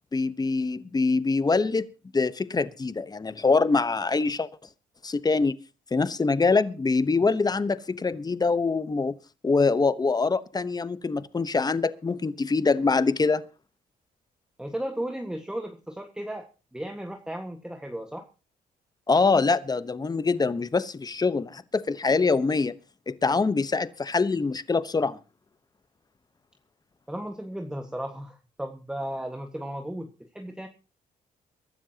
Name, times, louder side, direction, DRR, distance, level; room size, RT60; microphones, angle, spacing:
voice 1, 0.1-1.8 2.1-4.5 5.0-5.6 5.9-9.2 9.4-13.4 19.1-22.7 23.1-25.2, left 4 dB, 25° left, 1.0 m, -24 dB
voice 2, 14.6-16.5 16.7-18.3 27.1-30.7, right 1 dB, 5° right, 1.6 m, -35 dB
23.5 x 12.5 x 2.9 m
cardioid pair, 75°, 16 cm